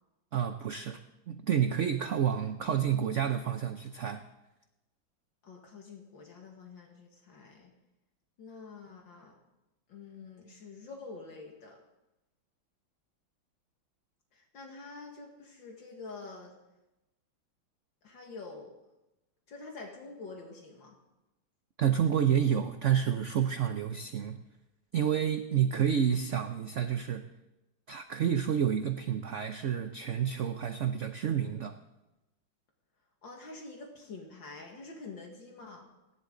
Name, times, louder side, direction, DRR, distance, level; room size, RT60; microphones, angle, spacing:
voice 1, 0.3-1.0 1.3-4.2 21.8-24.4 24.9-27.3 27.9-31.8, right 9 dB, 60° right, 8 dB, 0.8 m, -29 dB
voice 2, 5.4-7.7 8.4-9.4 9.9-11.8 14.3-16.5 18.0-18.7 19.5-21.0 33.2-35.9, left 3 dB, 70° left, 1 dB, 2.5 m, -47 dB
29.5 x 11.5 x 3.9 m, 0.98 s
omnidirectional pair, 2.1 m